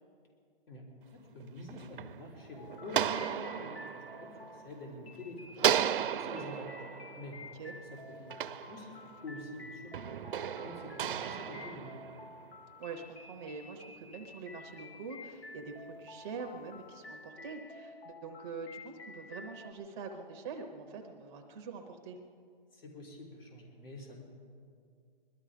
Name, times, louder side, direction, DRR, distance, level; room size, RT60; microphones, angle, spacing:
voice 1, 1.1-5.7 6.1-6.7 7.2-8.9 9.2-10.3 10.6-12.0 22.7-24.2, left 2 dB, 70° left, -1 dB, 3.6 m, -47 dB
sound 1, 1.4-5.1 5.6-9.3 9.9-12.6, right 9 dB, 60° right, 0.5 m, -35 dB
sound 2, 2.6-19.7, left 3 dB, 85° left, 1.4 m, -51 dB
voice 2, 12.8-22.2, right 4 dB, 10° right, 3 dB, 0.6 m, -44 dB
21.0 x 12.5 x 5.0 m, 2.3 s
hypercardioid pair, 165°, 30 cm